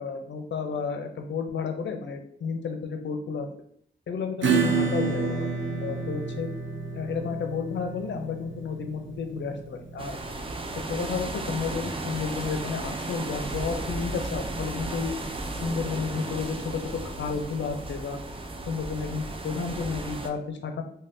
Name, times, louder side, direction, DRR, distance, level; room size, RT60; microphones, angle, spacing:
voice 1, 0.0-3.5 4.1-5.5 5.8-6.5 6.9-10.1 10.9-15.1 15.6-18.2 18.7-20.8, left 5 dB, 75° left, 5 dB, 0.4 m, -32 dB
Acoustic guitar / Strum, 4.4-11.6, right 4 dB, 90° right, 0.5 m, -30 dB
sound 1, 10.0-20.3, right 2 dB, 30° right, 0.3 m, -34 dB
3.4 x 2.2 x 2.6 m, 0.66 s
wide cardioid pair, 75°, 19 cm